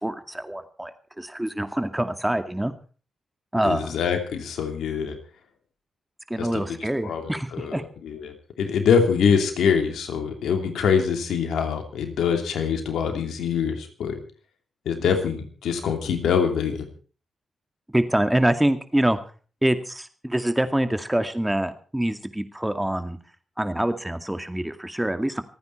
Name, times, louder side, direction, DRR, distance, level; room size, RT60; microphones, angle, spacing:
voice 1, 0.0-2.7 3.5-3.9 6.3-7.8 17.9-19.2 19.6-23.2 23.6-25.4, right 1 dB, 10° right, 9 dB, 2.2 m, -25 dB
voice 2, 3.6-5.2 6.4-6.8 7.0-14.2 14.8-16.9, left 6 dB, 80° left, 5 dB, 2.9 m, -24 dB
26.5 x 9.5 x 4.5 m, 0.39 s
supercardioid pair, 40°, 0 cm